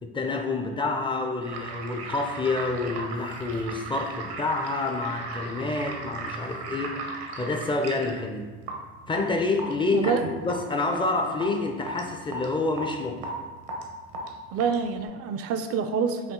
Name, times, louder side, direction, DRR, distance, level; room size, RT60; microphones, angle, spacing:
voice 1, 0.0-7.0 7.3-8.5 9.1-13.4, left 3 dB, 15° left, 4 dB, 0.4 m, -28 dB
sound 1, 1.4-15.1, right 3 dB, 90° right, 0.9 m, -37 dB
voice 2, 9.9-10.2 14.5-16.3, right 6 dB, 50° right, 9 dB, 0.4 m, -27 dB
5.9 x 2.4 x 3.7 m, 1.4 s
cardioid pair, 110°, 30 cm